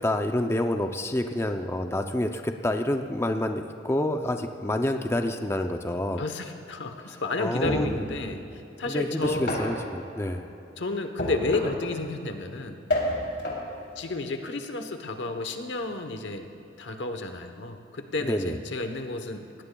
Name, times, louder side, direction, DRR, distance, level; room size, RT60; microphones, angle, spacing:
voice 1, 0.0-6.2 7.1-7.9 8.9-10.5 18.3-18.6, left 1 dB, 15° left, 5 dB, 0.4 m, -28 dB
voice 2, 6.2-9.5 10.8-12.8 14.0-16.5 16.8-19.6, left 2 dB, 80° left, 6 dB, 1.0 m, -31 dB
sound 1, 7.6-8.1 9.2-9.8 11.2-11.9 12.9-13.7, left 1 dB, 65° left, 3.1 m, -29 dB
20.0 x 16.5 x 2.3 m, 2.9 s
head